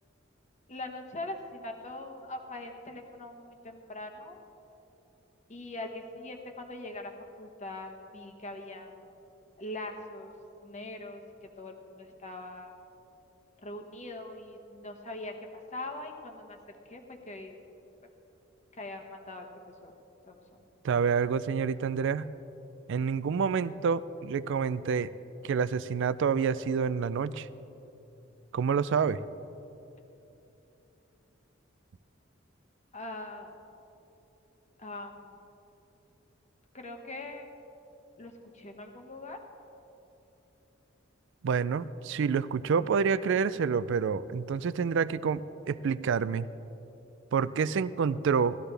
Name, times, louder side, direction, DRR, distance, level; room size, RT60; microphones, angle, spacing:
voice 1, 0.7-4.4 5.5-7.1 7.4-9.0 9.6-10.3 10.6-12.7 13.6-16.6 16.9-17.6 18.7-19.5 19.8-19.9 20.3-20.7 32.9-33.6 34.8-35.4 36.7-37.5 38.2-39.4, left 2 dB, 35° left, 3 dB, 1.2 m, -42 dB
voice 2, 20.8-22.3 22.9-25.1 25.4-27.5 28.5-29.2 41.4-45.4 45.7-46.5 47.3-48.6, right 6 dB, 65° right, 16 dB, 0.4 m, -28 dB
18.0 x 13.5 x 3.4 m, 3.0 s
head